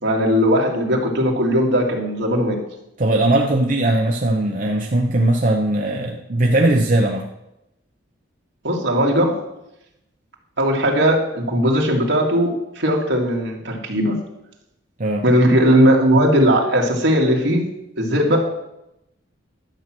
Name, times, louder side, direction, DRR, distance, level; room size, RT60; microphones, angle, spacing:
voice 1, 0.0-2.6 8.6-9.4 10.6-14.2 15.2-17.7 18.0-18.5, equal, 70° right, 0 dB, 2.4 m, -18 dB
voice 2, 3.0-7.3 15.0-15.2, right 1 dB, 45° right, 0 dB, 0.9 m, -19 dB
11.5 x 7.5 x 6.1 m, 0.88 s
head